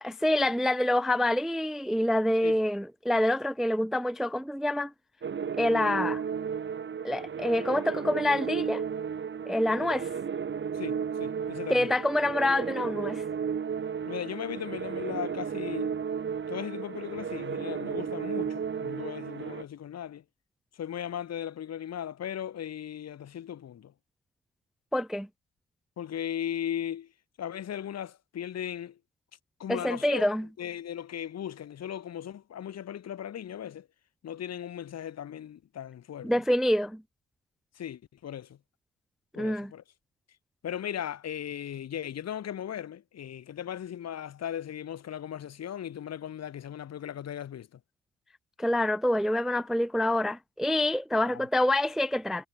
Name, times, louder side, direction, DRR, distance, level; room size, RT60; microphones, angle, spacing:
voice 1, 0.0-4.9 5.6-6.2 7.0-8.8 9.5-10.1 11.7-13.2 24.9-25.3 29.7-30.5 36.2-37.0 39.4-39.7 48.6-52.5, left 1 dB, ahead, 0.4 m, -26 dB
sound 1, 5.2-19.6, right 7 dB, 40° right, 1.6 m, -34 dB
voice 2, 10.7-11.9 14.0-15.9 16.5-20.2 20.7-23.9 26.0-27.1 27.4-29.0 29.6-30.3 30.6-33.9 34.2-36.3 37.8-38.6 39.4-39.8 40.6-47.8 51.2-51.4, left 10 dB, 60° left, 1.9 m, -37 dB
cardioid pair, 90°, 30 cm